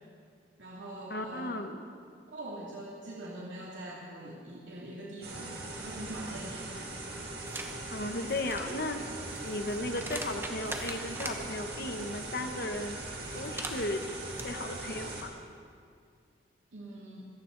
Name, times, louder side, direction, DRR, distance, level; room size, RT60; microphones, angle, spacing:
voice 1, 0.6-1.6 2.3-6.8 16.7-17.3, right 1 dB, 85° right, -5 dB, 2.5 m, -43 dB
voice 2, 1.1-1.9 7.9-9.0 9.4-13.0 13.3-14.1 14.4-15.3, left 2 dB, 55° left, 6 dB, 1.0 m, -35 dB
sound 1, 5.2-15.2, right 2 dB, 55° right, 2.9 m, -40 dB
sound 2, 7.5-7.7 8.2-11.4 13.3-14.4, right 2 dB, 10° right, 1.0 m, -41 dB
25.0 x 14.5 x 3.9 m, 2.2 s
head